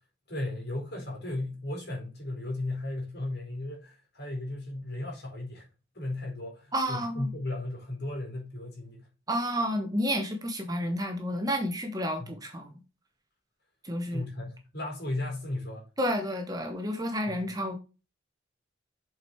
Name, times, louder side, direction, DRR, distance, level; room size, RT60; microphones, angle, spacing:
voice 1, 0.3-5.7 5.9-9.1 12.2-12.3 14.1-15.9 17.3-17.5, left 2 dB, 55° left, 4.3 m, -35 dB
voice 2, 6.7-7.3 9.3-12.7 13.8-14.2 16.0-17.8, equal, 20° right, 1.2 m, -30 dB
7.7 x 5.2 x 4.6 m
head